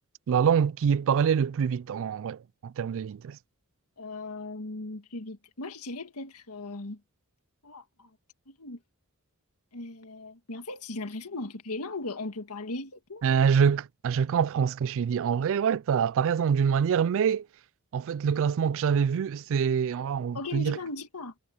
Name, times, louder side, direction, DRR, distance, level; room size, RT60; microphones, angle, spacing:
voice 1, 0.3-3.4 13.2-17.5 17.9-20.8, right 7 dB, 60° right, 0.3 m, -25 dB
voice 2, 4.0-7.0 7.6-8.1 8.5-8.8 9.7-13.2 20.3-21.3, left 2 dB, 90° left, 1.8 m, -38 dB
head